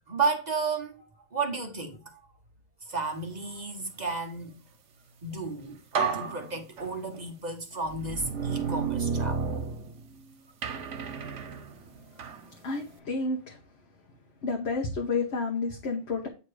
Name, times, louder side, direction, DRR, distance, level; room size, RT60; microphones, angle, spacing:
voice 1, 0.1-1.0 1.3-2.2 2.9-4.5 5.2-5.8 6.1-9.4 11.0-11.1 12.2-12.3, right 4 dB, 40° right, 1.0 m, -32 dB
sound 1, 5.4-5.5 5.9-7.2 7.9-10.2 10.6-12.4, right 5 dB, 85° right, 1.3 m, -32 dB
voice 2, 12.6-13.6 14.4-16.3, left 3 dB, 65° left, 1.3 m, -30 dB
8.5 x 2.9 x 4.7 m
omnidirectional pair, 1.2 m